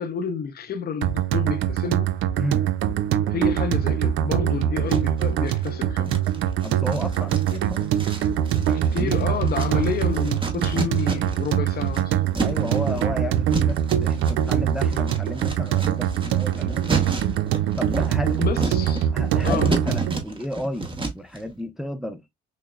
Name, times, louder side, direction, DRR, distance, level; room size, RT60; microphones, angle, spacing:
voice 1, 0.0-2.1 3.3-6.2 8.6-12.2 18.4-19.1 19.4-19.7, left 7 dB, 50° left, 0.6 m, -30 dB
sound 1, 1.0-20.2, right 10 dB, 85° right, 0.4 m, -23 dB
sound 2, 4.9-5.7 6.1-11.6 11.8-21.4, right 2 dB, 25° right, 1.0 m, -32 dB
voice 2, 6.6-7.9 8.5-9.1 12.4-17.3 17.8-18.4 19.1-22.2, equal, ahead, 0.4 m, -32 dB
5.9 x 2.0 x 2.2 m
cardioid pair, 90°, 20 cm